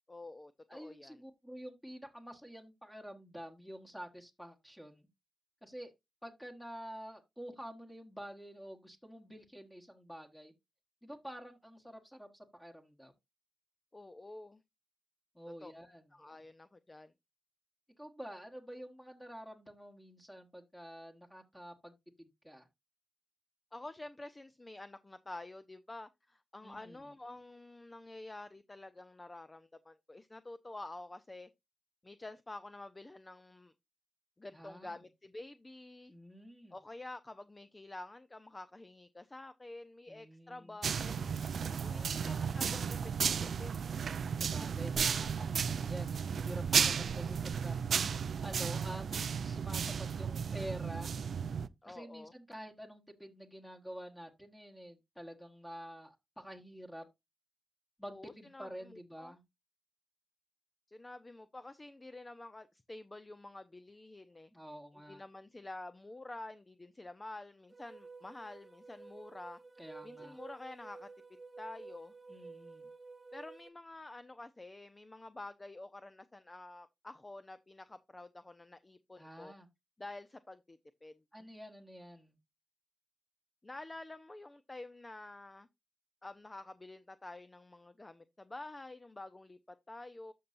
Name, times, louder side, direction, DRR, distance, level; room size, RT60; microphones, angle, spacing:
voice 1, 0.1-1.2 13.9-14.6 15.5-15.7 16.1-17.1 23.7-31.5 32.0-33.7 34.4-36.1 36.7-41.4 41.8-43.7 51.8-52.3 58.1-59.3 60.9-64.5 65.1-69.6 70.0-71.1 71.6-72.1 73.3-79.5 80.0-81.5 83.6-85.7 86.2-90.3, left 2 dB, 25° left, 0.6 m, -49 dB
voice 2, 0.7-5.1 5.6-5.9 6.2-10.5 11.0-13.1 15.3-16.0 18.0-22.7 26.6-27.0 34.5-35.0 36.1-36.8 40.1-40.8 41.8-42.4 44.4-47.8 48.4-51.1 51.8-57.1 58.0-59.4 64.5-65.2 69.8-70.4 72.3-72.9 79.2-79.7 81.3-82.4, equal, 5° left, 1.4 m, -48 dB
sound 1, 40.8-51.7, right 6 dB, 70° right, 0.4 m, -34 dB
sound 2, 67.7-73.7, right 4 dB, 30° right, 0.8 m, -52 dB
13.0 x 5.5 x 2.6 m
cardioid pair, 65°, 0 cm